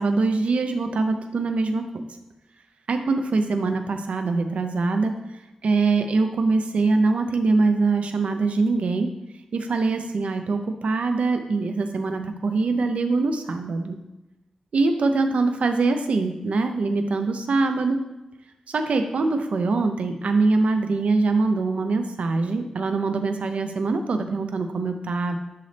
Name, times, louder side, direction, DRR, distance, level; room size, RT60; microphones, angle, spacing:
voice 1, 0.0-1.8 2.9-5.1 5.6-9.1 9.5-14.0 14.7-18.0 18.7-25.4, right 3 dB, 85° right, 7 dB, 0.6 m, -23 dB
10.5 x 4.1 x 3.3 m, 0.99 s
wide cardioid pair, 130°, 2 cm